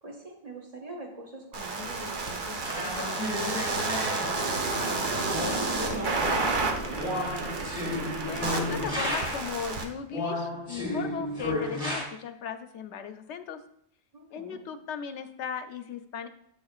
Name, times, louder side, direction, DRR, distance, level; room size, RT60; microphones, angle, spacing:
voice 1, 0.0-4.5 5.2-6.8 14.1-14.6, right 1 dB, 35° right, -1 dB, 1.5 m, -43 dB
sound 1, 1.5-9.8, right 3 dB, 50° right, 0.9 m, -31 dB
sound 2, 2.6-9.6 10.1-12.0, left 1 dB, 5° right, 2.0 m, -33 dB
voice 2, 8.3-13.6 14.3-16.3, left 7 dB, 90° left, 10 dB, 0.9 m, -37 dB
8.3 x 6.4 x 2.4 m, 0.72 s
omnidirectional pair, 1.1 m